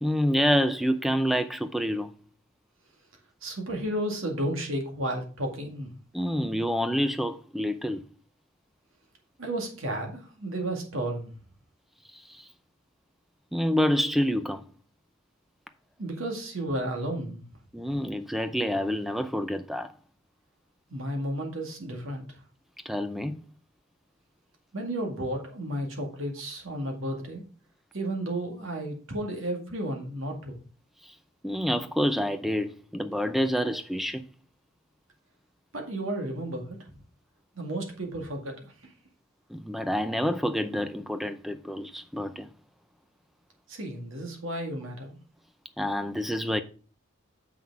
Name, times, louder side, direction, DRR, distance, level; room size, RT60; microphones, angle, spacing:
voice 1, 0.0-2.1 6.1-8.0 12.1-12.4 13.5-14.6 17.7-19.9 22.9-23.4 31.0-31.1 31.4-34.2 39.5-42.5 45.8-46.6, equal, ahead, 0.5 m, -27 dB
voice 2, 3.4-5.9 9.4-11.3 16.0-17.4 20.9-22.2 24.7-27.4 27.9-30.6 35.7-36.8 37.6-38.9 43.7-45.2, right 1 dB, 75° right, 2.0 m, -33 dB
7.1 x 5.9 x 4.7 m
head